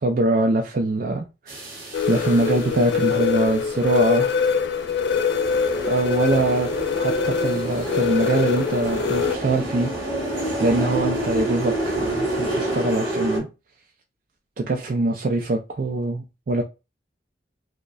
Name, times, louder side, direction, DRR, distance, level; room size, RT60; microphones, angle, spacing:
voice 1, 0.0-4.3 5.9-6.7 7.0-9.9 10.6-13.5 14.6-16.6, right 2 dB, 50° right, 0.4 m, -23 dB
sound 1, 1.5-13.4, right 1 dB, 20° right, 1.8 m, -29 dB
sound 2, 1.9-9.4, left 6 dB, 75° left, 0.3 m, -24 dB
4.9 x 2.1 x 2.2 m
head